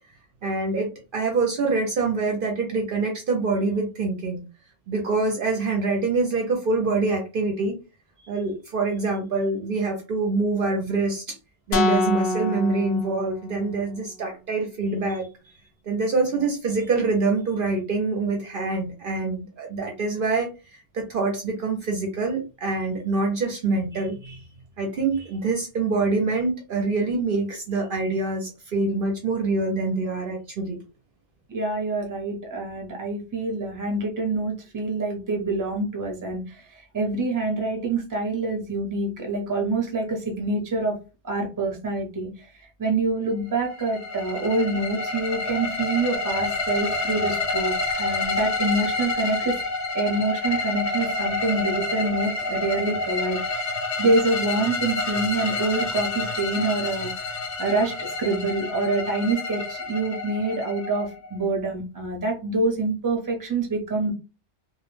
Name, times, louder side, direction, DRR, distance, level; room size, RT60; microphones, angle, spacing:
voice 1, 0.4-4.4 4.9-7.8 8.2-11.4 11.7-15.3 15.9-24.4 24.8-30.8, right 3 dB, 60° right, 1 dB, 0.7 m, -25 dB
sound 1, 11.7-13.8, left 2 dB, 90° left, 0.9 m, -26 dB
voice 2, 31.5-41.0 41.2-49.6 49.9-64.1, right 2 dB, 20° right, 1 dB, 0.6 m, -26 dB
sound 2, 43.5-61.4, left 3 dB, 55° left, 0.6 m, -28 dB
2.3 x 2.0 x 3.0 m, 0.31 s
omnidirectional pair, 1.1 m